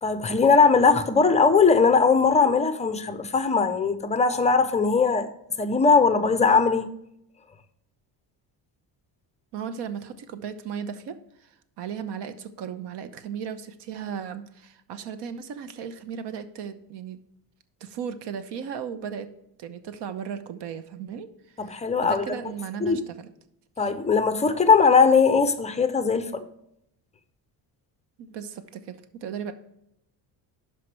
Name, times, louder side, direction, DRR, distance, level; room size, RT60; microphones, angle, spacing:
voice 1, 0.0-5.3 5.6-6.9 21.6-22.5 22.8-23.0 23.8-26.4, left 5 dB, 15° left, 0.5 m, -20 dB
voice 2, 9.5-17.2 17.8-19.3 19.6-21.3 21.5-23.3 23.8-23.9 28.2-29.5, right 7 dB, 75° right, 0.9 m, -36 dB
12.0 x 5.0 x 3.3 m
cardioid pair, 165°, 41 cm